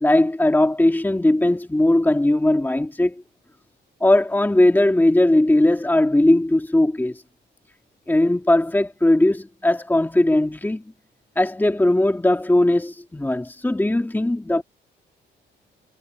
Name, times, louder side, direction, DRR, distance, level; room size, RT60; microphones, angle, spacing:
voice 1, 0.0-3.2 4.0-7.2 8.1-10.8 11.4-14.6, left 1 dB, 10° left, 2.3 m, -19 dB
cardioid pair, 90°, 20 cm